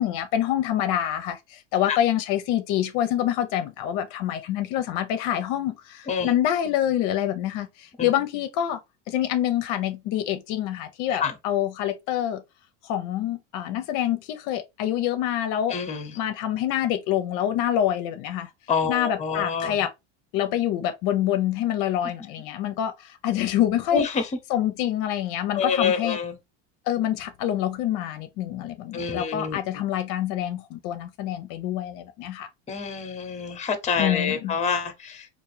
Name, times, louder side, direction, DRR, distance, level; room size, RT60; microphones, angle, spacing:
voice 1, 0.0-8.8 9.1-12.4 12.8-15.8 16.1-18.5 18.9-19.9 20.3-24.0 24.5-26.2 26.9-32.5 34.0-34.5, left 11 dB, 60° left, 0.6 m, -26 dB
voice 2, 15.7-16.2 18.7-19.8 23.9-24.3 25.5-26.4 28.9-29.6 32.7-35.3, left 6 dB, 20° left, 0.8 m, -27 dB
3.6 x 2.5 x 3.2 m
supercardioid pair, 120°, 35 cm